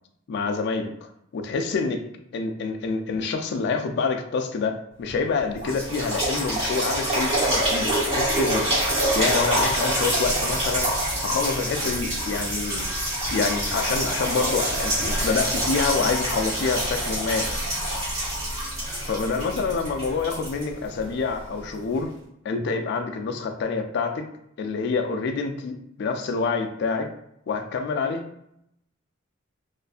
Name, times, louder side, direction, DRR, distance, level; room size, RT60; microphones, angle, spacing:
voice 1, 0.3-0.9 1.3-2.0 2.3-8.7 9.1-10.9 11.2-12.8 13.3-17.5 19.0-22.1 22.4-24.3 24.6-27.1 27.5-28.2, left 4 dB, 60° left, 5 dB, 0.3 m, -27 dB
sound 1, 5.1-5.2 5.6-21.3 22.0-22.1, right 1 dB, 30° right, 1.0 m, -26 dB
2.5 x 2.2 x 2.4 m, 0.76 s
head